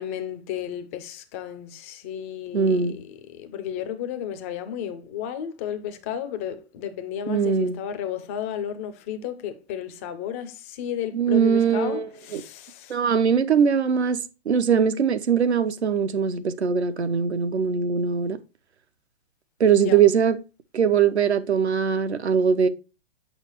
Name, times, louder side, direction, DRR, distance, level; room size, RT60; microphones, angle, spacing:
voice 1, 0.0-13.0 19.8-20.0, left 9 dB, 15° left, 0.3 m, -33 dB
voice 2, 2.5-3.0 7.3-7.8 11.1-12.1 12.3-12.4 12.9-14.2 14.5-18.4 19.6-20.4 20.7-22.7, right 7 dB, 80° right, 0.8 m, -21 dB
6.6 x 5.8 x 2.9 m
figure-of-eight pair, 120°, 32 cm